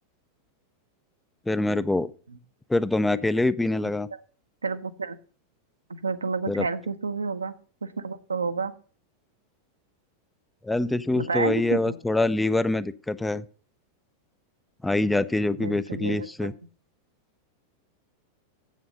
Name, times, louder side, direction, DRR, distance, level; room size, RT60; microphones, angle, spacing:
voice 1, 1.5-2.1 2.7-4.1 6.5-6.6 10.6-13.4 14.8-16.5, left 2 dB, 5° left, 16 dB, 0.4 m, -25 dB
voice 2, 4.6-5.2 5.9-7.5 7.8-8.7 11.2-12.0 15.6-16.5, right 4 dB, 75° right, 11 dB, 0.7 m, -30 dB
7.8 x 7.3 x 5.3 m, 0.39 s
figure-of-eight pair, 90°, 0 cm